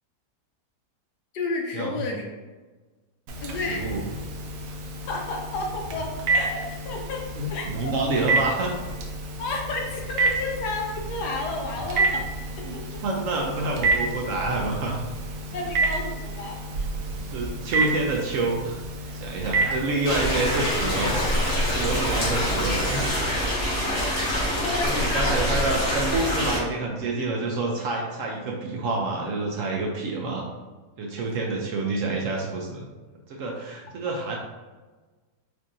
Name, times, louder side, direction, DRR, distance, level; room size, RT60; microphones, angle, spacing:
voice 1, 1.3-2.3 3.4-3.8 5.0-7.2 7.5-7.7 9.4-12.2 15.5-16.9 19.1-19.8 24.6-25.4 34.1-34.4, left 3 dB, 75° left, 0 dB, 1.2 m, -32 dB
Telephone, 3.3-23.1, right 3 dB, 90° right, 1.3 m, -30 dB
voice 2, 3.7-4.0 7.4-8.7 12.6-12.7 13.0-15.0 17.2-18.8 19.1-21.2 21.7-23.1 24.8-30.5 31.0-32.9 33.3-34.4, right 3 dB, 70° right, 0 dB, 0.8 m, -28 dB
sound 1, 20.0-26.6, equal, 45° left, 1.4 m, -25 dB
4.5 x 2.7 x 2.5 m, 1.3 s
omnidirectional pair, 1.8 m